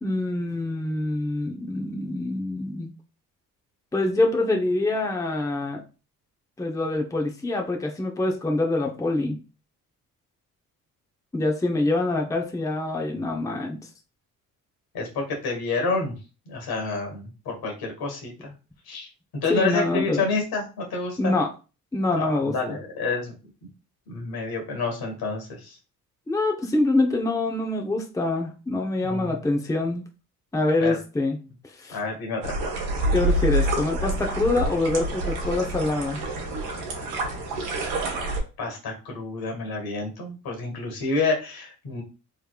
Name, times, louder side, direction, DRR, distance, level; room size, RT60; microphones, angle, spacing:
voice 1, 0.0-2.9 3.9-5.8 6.6-9.4 11.3-13.8 19.5-20.2 21.2-21.5 21.9-22.8 26.3-30.0 30.5-31.4 31.6-32.0 33.1-36.2, left 2 dB, 10° left, 2 dB, 0.7 m, -25 dB
voice 2, 14.9-16.2 16.5-18.5 18.9-19.1 19.4-21.3 22.2-23.3 24.1-25.8 29.0-29.3 30.8-31.0 31.9-32.5 38.6-42.0, left 3 dB, 65° left, 1 dB, 1.6 m, -29 dB
sound 1, 32.4-38.4, right 1 dB, 80° right, 1.2 m, -27 dB
3.3 x 3.2 x 2.3 m, 0.32 s
supercardioid pair, 60°, 38 cm